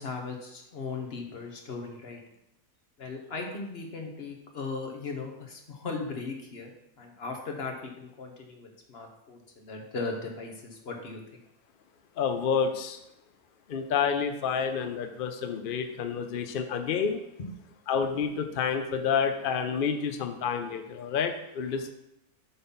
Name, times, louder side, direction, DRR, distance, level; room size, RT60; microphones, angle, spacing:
voice 1, 0.0-2.2 3.0-6.7 7.0-11.2 17.4-17.5, left 4 dB, 45° left, 2 dB, 1.3 m, -37 dB
voice 2, 12.2-13.0 13.7-17.2 17.9-21.9, left 6 dB, 70° left, 8 dB, 0.5 m, -29 dB
7.6 x 4.0 x 5.6 m, 0.85 s
omnidirectional pair, 1.6 m